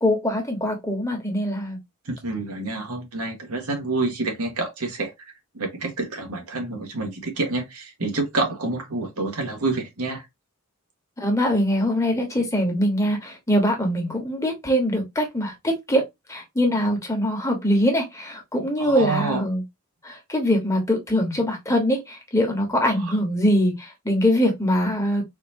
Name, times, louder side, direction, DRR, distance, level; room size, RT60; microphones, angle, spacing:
voice 1, 0.0-1.8 11.2-16.0 16.3-19.6 20.0-25.2, equal, 15° left, 1.2 m, -23 dB
voice 2, 2.0-10.2 18.8-19.4 22.8-22.9, right 3 dB, 90° right, 1.5 m, -28 dB
4.2 x 2.8 x 2.6 m
head